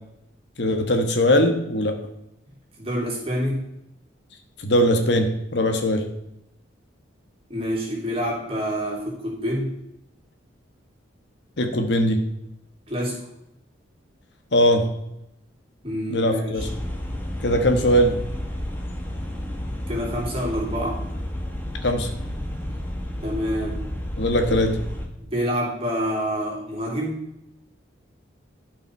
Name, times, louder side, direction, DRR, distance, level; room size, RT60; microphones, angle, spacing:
voice 1, 0.6-2.0 4.6-6.0 11.6-12.2 14.5-14.8 16.1-16.7 17.4-18.1 21.8-22.1 24.2-24.8, equal, 60° left, 5 dB, 1.3 m, -20 dB
voice 2, 2.8-3.6 7.5-9.7 12.9-13.2 15.8-16.7 19.9-21.0 23.2-23.8 25.2-27.2, equal, 30° right, -4 dB, 3.1 m, -27 dB
sound 1, 16.6-25.1, left 1 dB, 10° left, 1.2 m, -31 dB
12.5 x 5.5 x 4.6 m, 0.82 s
head